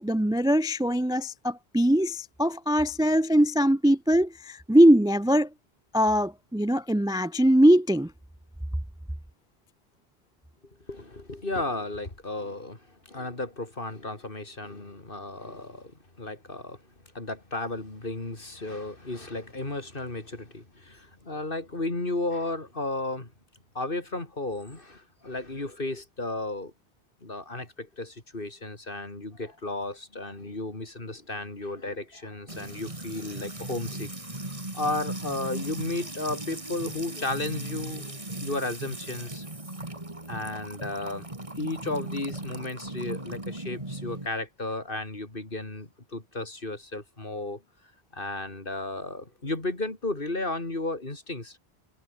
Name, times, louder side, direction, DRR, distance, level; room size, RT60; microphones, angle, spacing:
voice 1, 0.0-5.5 5.9-8.1, equal, 5° right, 0.3 m, -21 dB
voice 2, 10.9-16.8 17.1-23.3 23.7-26.7 27.2-34.1 34.7-39.5 40.3-41.2 41.6-47.6 48.1-51.6, left 2 dB, 60° left, 3.9 m, -34 dB
Music / Water tap faucet / Trickle dribble, 32.5-44.3, right 2 dB, 30° right, 3.1 m, -38 dB
omnidirectional pair, 1.1 m